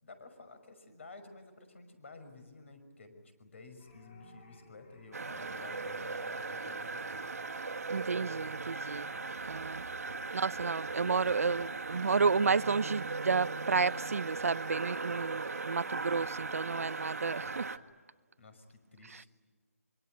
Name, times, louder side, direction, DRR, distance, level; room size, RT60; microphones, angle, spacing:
voice 1, 0.0-7.3 18.4-19.3, left 3 dB, 50° left, 5.8 m, -53 dB
sound 1, 3.8-9.3, left 2 dB, 30° left, 3.4 m, -62 dB
sound 2, 5.1-17.8, right 3 dB, 80° right, 1.9 m, -38 dB
voice 2, 7.9-9.1 9.5-17.7 19.1-19.2, right 5 dB, 65° right, 0.8 m, -32 dB
25.5 x 24.5 x 9.4 m
hypercardioid pair, 170°, 9 cm